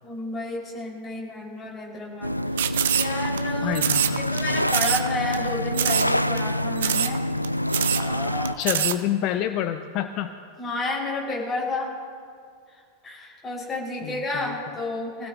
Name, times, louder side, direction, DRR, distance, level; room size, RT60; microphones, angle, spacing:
voice 1, 0.0-2.7 2.9-7.2 8.0-8.6 10.6-11.9 12.7-15.3, left 2 dB, 15° left, -4 dB, 5.0 m, -31 dB
sound 1, 2.2-8.5, equal, 90° left, 0.3 m, -26 dB
sound 2, 2.6-3.4 3.7-4.4 4.7-5.1 5.3-5.4 5.7-6.1 6.4-6.5 6.8-7.2 7.4-7.5 7.7-8.0 8.4-9.0, right 10 dB, 60° right, 0.6 m, -24 dB
voice 2, 3.6-4.2 4.5-4.6 8.6-10.3 14.0-14.5, left 11 dB, 40° left, 9 dB, 0.6 m, -28 dB
24.5 x 16.0 x 2.8 m, 2.1 s
figure-of-eight pair, 90°, 0 cm